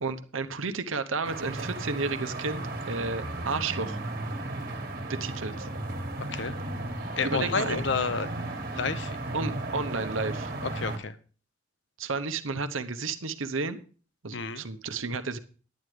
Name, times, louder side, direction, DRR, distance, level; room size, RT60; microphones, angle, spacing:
voice 1, 0.0-4.0 5.1-5.7 7.2-7.8 9.3-10.5 12.0-13.8 14.2-15.4, right 4 dB, 80° right, 11 dB, 1.0 m, -32 dB
sound 1, 1.2-11.0, right 2 dB, 45° right, 1.7 m, -35 dB
voice 2, 7.2-9.2 10.6-11.2 14.3-14.6, left 5 dB, 60° left, 13 dB, 0.8 m, -30 dB
10.5 x 9.4 x 4.9 m, 0.39 s
head